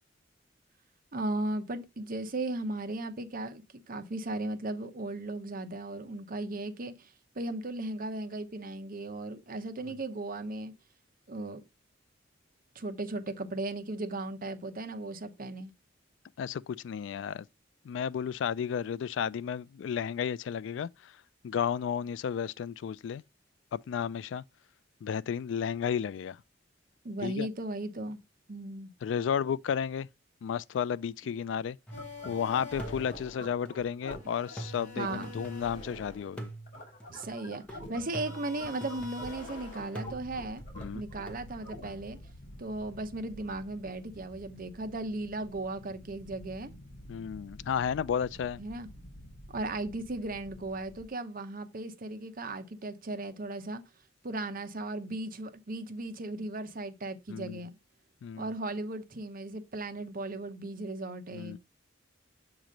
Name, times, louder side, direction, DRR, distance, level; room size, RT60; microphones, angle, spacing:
voice 1, 1.1-7.1 7.3-10.7 11.3-11.6 12.7-15.7 27.0-28.2 28.5-28.9 35.0-35.5 37.1-40.6 40.9-42.2 42.6-46.7 48.6-48.9 49.5-53.8 54.2-57.7 58.4-61.6, right 2 dB, 50° right, 0.8 m, -36 dB
voice 2, 16.4-17.5 17.9-21.1 21.4-23.2 23.7-24.4 25.0-26.4 27.2-27.5 29.0-30.1 30.4-31.8 32.3-36.5 40.8-41.0 47.1-48.6 57.3-57.6 58.2-58.5 61.3-61.6, left 7 dB, 70° left, 0.3 m, -33 dB
sound 1, 31.9-42.3, left 2 dB, 45° left, 3.0 m, -45 dB
sound 2, 31.9-32.4 32.8-35.9 36.4-39.5 39.9-41.4, right 1 dB, 5° left, 1.0 m, -45 dB
sound 3, 40.0-51.1, equal, 90° left, 1.0 m, -50 dB
7.4 x 3.0 x 5.0 m
head